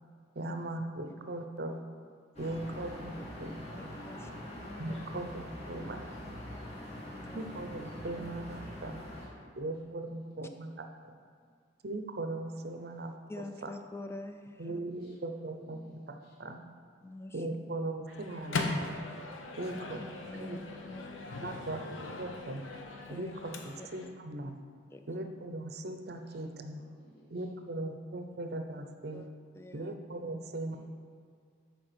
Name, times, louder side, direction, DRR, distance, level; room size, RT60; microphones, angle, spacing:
voice 1, 0.4-1.8 2.4-3.5 4.8-6.1 7.3-9.0 9.6-11.1 11.8-13.1 14.6-15.8 16.1-16.6 17.3-19.0 19.6-20.0 20.4-20.6 21.4-21.8 22.2-22.6 23.1-24.6 25.1-26.8 27.3-29.3 29.7-30.8, right 2 dB, 50° right, 5 dB, 0.6 m, -39 dB
sound 1, 2.3-9.3, left 1 dB, 35° left, 1.3 m, -44 dB
voice 2, 2.4-3.2 4.1-4.3 9.0-9.6 10.0-10.1 14.9-15.1 15.6-15.9 16.2-16.3 20.8-21.1 21.3-22.1 26.3-26.4 27.0-27.4 30.7-30.8, equal, 50° left, -6 dB, 1.6 m, -59 dB
voice 3, 3.8-4.3 4.9-5.1 7.1-7.5 8.2-8.3 13.3-14.8 17.0-17.5 19.6-20.6 20.9-21.0 23.1-23.3 23.8-24.1 24.9-25.0 29.1-29.2 29.5-29.9, left 2 dB, 15° left, 7 dB, 0.3 m, -46 dB
Microwave oven, 18.1-24.1, left 3 dB, 80° left, 0.8 m, -39 dB
6.5 x 4.7 x 6.0 m, 2.1 s
head